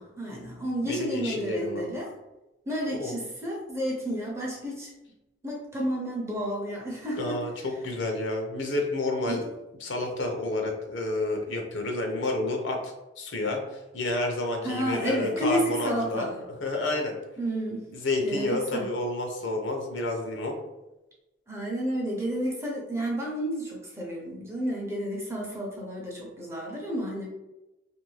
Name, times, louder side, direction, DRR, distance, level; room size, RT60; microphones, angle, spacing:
voice 1, 0.0-2.1 2.7-4.9 5.4-7.4 9.3-9.5 14.6-16.4 17.4-17.9 18.2-18.9 21.5-27.3, equal, 15° right, -2 dB, 0.6 m, -31 dB
voice 2, 0.8-1.8 2.9-3.1 7.2-9.5 9.8-13.6 13.9-16.3 16.6-17.1 17.9-20.5, left 2 dB, 85° left, 2 dB, 0.7 m, -30 dB
2.6 x 2.6 x 3.1 m, 1.0 s
head